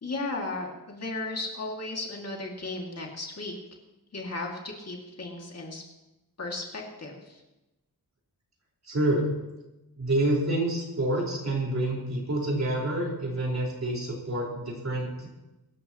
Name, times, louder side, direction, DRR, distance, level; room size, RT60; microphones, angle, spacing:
voice 1, 0.0-3.5 4.1-5.8 6.4-7.4, left 2 dB, 40° left, -1 dB, 2.3 m, -35 dB
voice 2, 8.8-9.3 10.0-15.3, right 1 dB, 45° right, -2 dB, 4.5 m, -28 dB
23.5 x 13.0 x 3.0 m, 1.0 s
wide cardioid pair, 150°, 37 cm